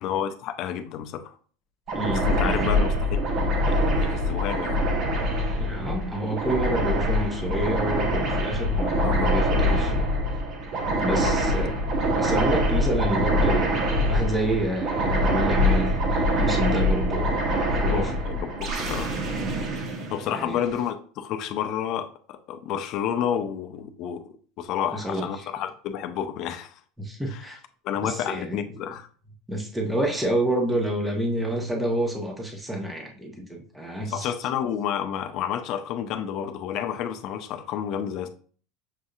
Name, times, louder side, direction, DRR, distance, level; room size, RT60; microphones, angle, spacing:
voice 1, 0.0-1.3 2.3-3.2 3.7-4.8 8.8-9.3 11.1-11.4 17.9-19.2 20.1-24.2 24.6-26.7 27.3-27.4 27.8-29.1 34.1-38.3, left 9 dB, 50° left, 8 dB, 0.5 m, -30 dB
voice 2, 1.9-2.7 5.6-10.1 11.0-18.1 20.3-20.6 24.9-25.5 27.0-27.6 28.0-28.6 29.5-34.3, right 1 dB, 5° right, 1 dB, 1.1 m, -29 dB
sound 1, 1.9-20.7, equal, 45° right, 1.0 m, -24 dB
6.6 x 2.6 x 2.4 m, 0.43 s
supercardioid pair, 130°, 0 cm